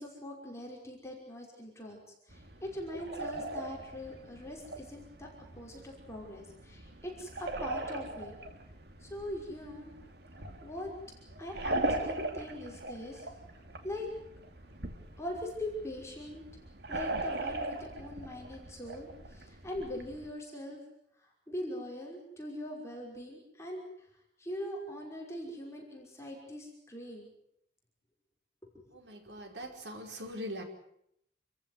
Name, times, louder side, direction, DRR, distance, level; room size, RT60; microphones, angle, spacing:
voice 1, 0.0-2.0 2.3-5.3 5.5-8.3 9.0-9.9 10.6-10.9 11.4-13.3 13.8-14.1 15.2-16.4 16.9-20.8 21.5-24.1 24.4-27.3 28.9-29.0, left 1 dB, 15° left, -1 dB, 5.5 m, -42 dB
sound 1, 2.3-20.3, right 2 dB, 65° right, 2.7 m, -40 dB
voice 2, 28.9-30.6, equal, 90° right, 4 dB, 5.2 m, -42 dB
28.0 x 15.0 x 9.6 m, 0.75 s
head